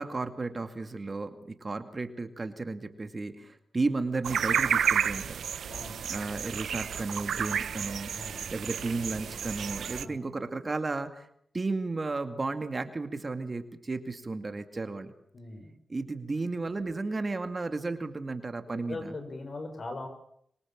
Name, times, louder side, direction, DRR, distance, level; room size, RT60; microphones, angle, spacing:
voice 1, 0.0-5.4 6.1-8.1 8.5-11.3 11.5-15.1 15.9-19.2, right 3 dB, 35° right, 8 dB, 2.3 m, -33 dB
sound 1, 4.2-10.1, right 8 dB, 85° right, 1.0 m, -31 dB
voice 2, 5.7-6.0 8.1-8.5 10.0-10.2 15.3-15.7 18.7-20.1, left 2 dB, 50° left, 8 dB, 6.1 m, -40 dB
25.0 x 23.5 x 7.4 m, 0.71 s
cardioid pair, 70°, 0 cm